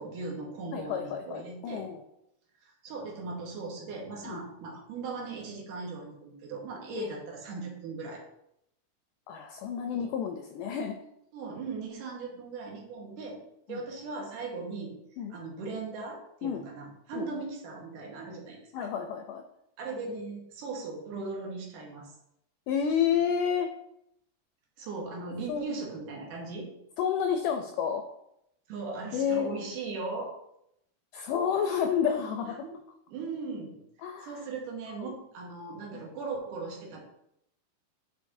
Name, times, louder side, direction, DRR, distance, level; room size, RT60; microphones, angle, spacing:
voice 1, 0.0-1.9 2.6-8.2 9.9-10.1 11.3-13.4 13.7-14.9 15.3-18.9 19.8-22.1 24.8-26.7 28.7-30.3 32.4-32.7 33.1-37.0, right 4 dB, 70° right, -1 dB, 2.6 m, -38 dB
voice 2, 0.7-2.0 4.2-4.4 6.9-7.1 9.3-11.0 13.7-13.8 15.2-15.4 16.4-16.7 17.1-17.3 18.7-19.4 22.7-23.7 25.5-25.6 27.0-28.0 29.1-29.5 31.1-32.6 34.0-34.4 34.9-35.1 35.9-36.0, left 7 dB, 80° left, 5 dB, 2.0 m, -30 dB
9.2 x 5.1 x 2.7 m, 0.79 s
omnidirectional pair, 4.1 m